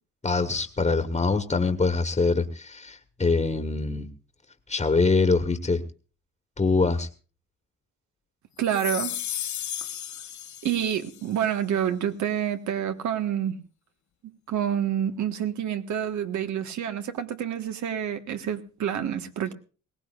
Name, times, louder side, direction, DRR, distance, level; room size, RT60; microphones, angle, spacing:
voice 1, 0.2-4.1 4.7-5.8 6.6-7.1, left 4 dB, 20° left, 1.5 m, -24 dB
sound 1, 8.6-11.2, left 10 dB, 70° left, 1.2 m, -34 dB
voice 2, 8.6-9.2 10.6-13.6 14.2-19.5, right 9 dB, 70° right, 1.6 m, -28 dB
21.0 x 18.0 x 2.5 m
cardioid pair, 90°, 30 cm